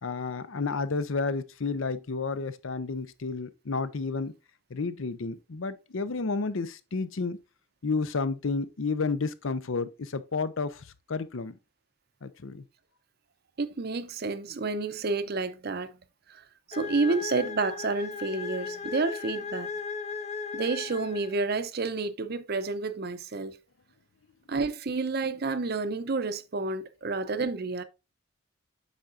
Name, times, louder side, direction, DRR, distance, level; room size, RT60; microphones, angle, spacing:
voice 1, 0.0-4.3 4.7-7.4 7.8-10.8 11.1-11.5 12.2-12.6, left 4 dB, 70° left, 0.6 m, -31 dB
voice 2, 13.6-16.0 16.3-19.7 20.5-23.6 24.5-27.8, right 3 dB, 50° right, 0.6 m, -30 dB
sound 1, 16.7-21.6, left 5 dB, 30° left, 0.6 m, -37 dB
8.3 x 5.8 x 2.5 m
head